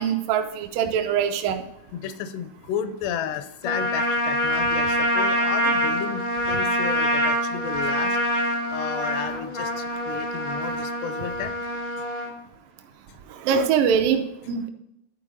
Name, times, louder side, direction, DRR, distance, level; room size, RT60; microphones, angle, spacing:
voice 1, 0.0-1.6 13.4-14.7, right 7 dB, 85° right, 6 dB, 1.9 m, -23 dB
voice 2, 1.9-11.5, left 8 dB, 80° left, 10 dB, 2.8 m, -33 dB
Trumpet, 3.6-12.3, equal, 40° left, 0.6 m, -25 dB
11.0 x 4.7 x 5.2 m, 0.83 s
omnidirectional pair, 4.9 m